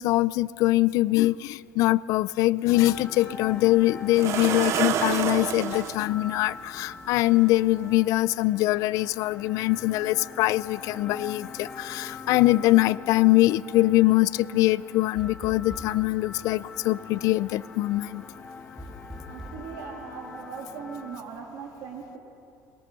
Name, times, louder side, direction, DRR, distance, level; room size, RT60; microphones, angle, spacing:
voice 1, 0.0-18.2, left 18 dB, 65° left, 19 dB, 0.4 m, -23 dB
sound 1, 2.7-21.2, left 4 dB, 25° left, 1.2 m, -42 dB
sound 2, 3.0-3.1 4.2-6.0 7.2-7.3 7.8-8.0, right 10 dB, 50° right, 0.7 m, -28 dB
sound 3, 15.1-16.1 18.8-19.7, equal, 10° right, 1.6 m, -41 dB
voice 2, 19.3-22.2, right 6 dB, 65° right, -1 dB, 2.7 m, -39 dB
23.0 x 22.0 x 6.7 m, 2.6 s
cardioid pair, 155°, 6 cm